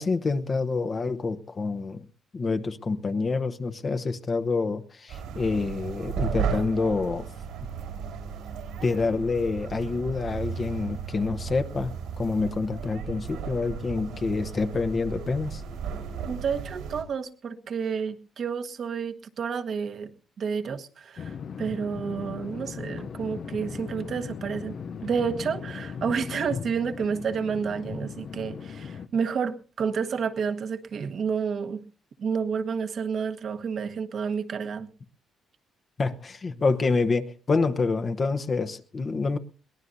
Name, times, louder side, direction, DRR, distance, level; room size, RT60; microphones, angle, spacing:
voice 1, 0.0-2.0 2.3-7.3 8.8-15.6 36.0-39.4, left 4 dB, 40° left, 8 dB, 1.0 m, -27 dB
sound 1, 5.1-17.0, right 7 dB, 85° right, 4.2 m, -35 dB
voice 2, 16.3-24.8 25.0-31.8 32.2-34.9, right 6 dB, 55° right, 8 dB, 1.3 m, -30 dB
sound 2, 21.2-29.1, left 6 dB, 55° left, 0.6 m, -38 dB
22.0 x 18.0 x 2.7 m, 0.36 s
cardioid pair, 90°, 0 cm